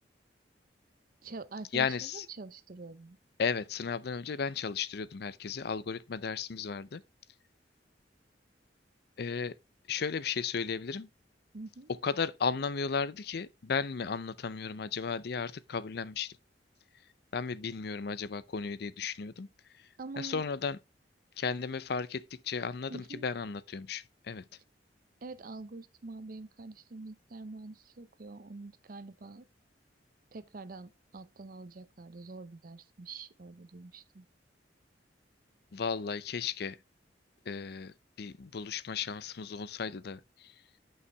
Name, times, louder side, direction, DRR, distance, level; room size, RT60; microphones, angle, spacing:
voice 1, 1.2-3.2 11.5-11.9 20.0-20.5 22.9-23.3 25.2-29.5 30.3-34.3, right 3 dB, 55° right, 0.6 m, -45 dB
voice 2, 1.7-2.2 3.4-7.0 9.2-9.6 9.9-11.1 11.9-16.4 17.3-19.5 19.7-19.9 20.2-20.8 21.4-24.5 35.7-36.8 37.5-40.5, left 5 dB, 65° left, 0.5 m, -35 dB
9.6 x 5.6 x 3.4 m
head